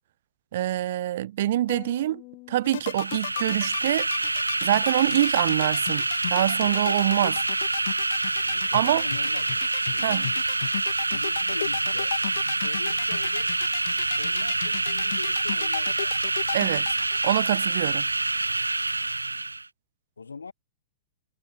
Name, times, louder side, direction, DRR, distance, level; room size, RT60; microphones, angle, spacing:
voice 1, 0.5-2.2 2.5-4.1 4.6-7.4 8.7-9.0 10.0-10.3 16.5-16.9 17.2-18.1, right 13 dB, 50° right, 0.8 m, -25 dB
sound 1, 1.7-3.7, left 28 dB, 35° left, 4.8 m, -46 dB
sound 2, 2.6-17.4, left 10 dB, 55° left, 2.2 m, -34 dB
sound 3, 2.8-19.7, right 3 dB, 80° right, 1.1 m, -27 dB
voice 2, 8.4-10.4 11.1-12.2 12.6-13.6 14.2-16.3 20.2-20.5, left 5 dB, 75° left, 5.4 m, -41 dB
figure-of-eight pair, 105°, 0 cm